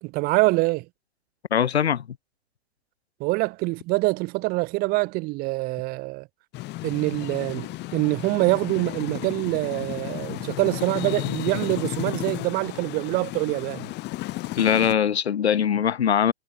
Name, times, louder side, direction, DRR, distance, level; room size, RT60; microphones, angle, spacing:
voice 1, 0.0-0.9 3.2-6.3 6.8-13.9, right 23 dB, 30° right, 0.8 m, -25 dB
voice 2, 1.5-2.1 14.6-16.3, left 8 dB, 85° left, 0.8 m, -21 dB
sound 1, 6.5-14.9, left 18 dB, 35° left, 6.0 m, -33 dB
hypercardioid pair, 120°, 31 cm